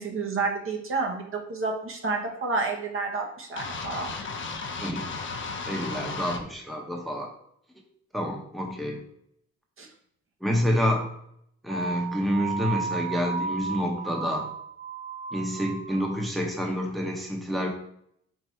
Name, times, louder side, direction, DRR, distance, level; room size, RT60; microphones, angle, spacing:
voice 1, 0.0-4.1 9.8-9.9, right 3 dB, 45° right, 1 dB, 0.9 m, -30 dB
sound 1, 3.6-6.4, left 4 dB, 40° left, 0.7 m, -34 dB
voice 2, 5.7-7.3 8.1-9.0 10.4-11.1 11.6-14.5 15.3-17.7, equal, ahead, 0 dB, 0.9 m, -28 dB
sound 2, 11.7-16.3, right 5 dB, 25° right, 0.4 m, -34 dB
4.6 x 2.6 x 4.4 m, 0.70 s
cardioid pair, 90°, 30 cm